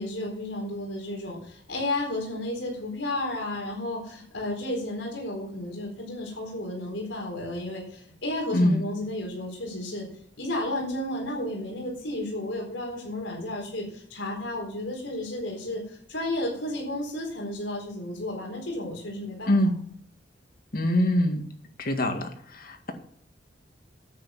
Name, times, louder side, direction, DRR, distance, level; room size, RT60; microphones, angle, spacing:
voice 1, 0.0-10.1 10.4-19.6, left 1 dB, 90° left, -1 dB, 4.2 m, -32 dB
voice 2, 19.5-19.8 20.7-21.4 21.8-22.9, left 1 dB, 55° left, 6 dB, 1.9 m, -24 dB
10.5 x 8.5 x 7.1 m, 0.64 s
head